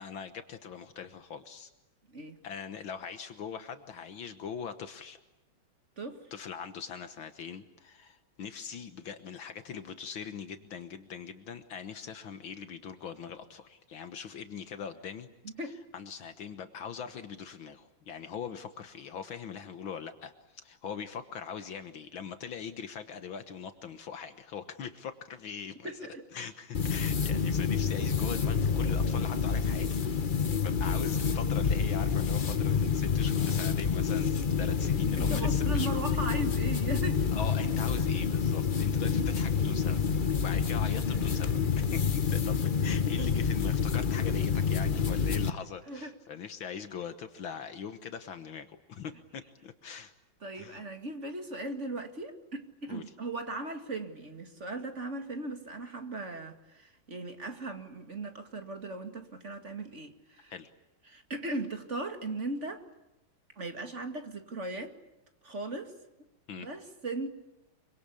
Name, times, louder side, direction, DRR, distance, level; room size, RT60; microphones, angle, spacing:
voice 1, 0.0-1.7 2.4-5.2 6.3-15.3 15.6-25.9 26.3-30.0 30.6-35.9 37.3-40.0 40.4-50.1 50.6-50.8 52.9-53.0 60.5-60.7 66.5-66.7, left 7 dB, 70° left, 2.1 m, -41 dB
voice 2, 6.0-6.3 15.4-15.8 25.8-26.3 35.2-37.3 43.2-43.3 45.9-46.1 50.4-60.5 61.1-62.8 63.6-65.0 65.4-65.9 66.6-67.3, right 2 dB, 35° right, 2.5 m, -38 dB
sound 1, 26.7-45.5, left 6 dB, 40° left, 0.7 m, -28 dB
25.5 x 24.5 x 8.5 m
omnidirectional pair, 2.3 m